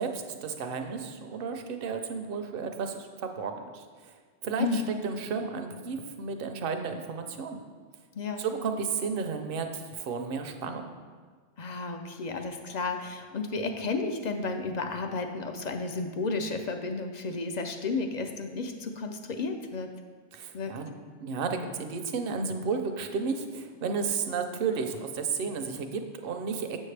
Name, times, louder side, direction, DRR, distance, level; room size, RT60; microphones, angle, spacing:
voice 1, 0.0-4.2 4.4-7.6 8.4-10.9 20.3-20.9 21.2-26.8, right 5 dB, 60° right, 6 dB, 0.8 m, -33 dB
voice 2, 4.6-5.0 8.1-8.5 11.6-19.9 20.5-20.8, left 3 dB, 55° left, 6 dB, 0.5 m, -32 dB
7.3 x 6.4 x 3.3 m, 1.5 s
omnidirectional pair, 1.2 m